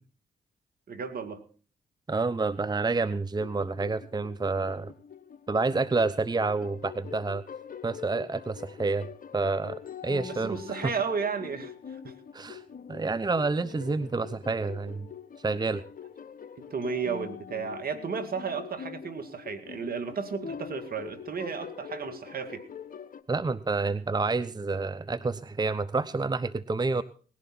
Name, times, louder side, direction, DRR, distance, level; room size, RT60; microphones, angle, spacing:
voice 1, 0.9-1.4 10.3-12.1 16.7-22.7, right 6 dB, 55° right, 8 dB, 2.2 m, -33 dB
voice 2, 2.1-4.9 5.5-7.4 7.8-9.1 9.3-10.9 12.3-12.6 12.9-15.1 15.4-15.8 23.3-27.0, right 3 dB, 25° right, 15 dB, 0.8 m, -29 dB
sound 1, 3.4-23.2, left 7 dB, 50° left, 1.3 m, -44 dB
18.5 x 11.5 x 4.3 m, 0.40 s
hypercardioid pair, 45°, 18 cm